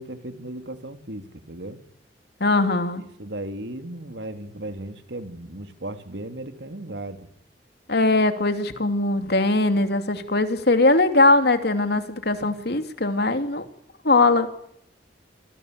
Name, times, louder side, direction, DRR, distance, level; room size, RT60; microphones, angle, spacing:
voice 1, 0.0-1.8 3.2-7.3, right 1 dB, 80° right, 8 dB, 3.0 m, -36 dB
voice 2, 2.4-3.0 7.9-13.6 14.0-14.5, left 2 dB, 65° left, 8 dB, 3.0 m, -20 dB
27.0 x 18.5 x 8.4 m, 0.73 s
head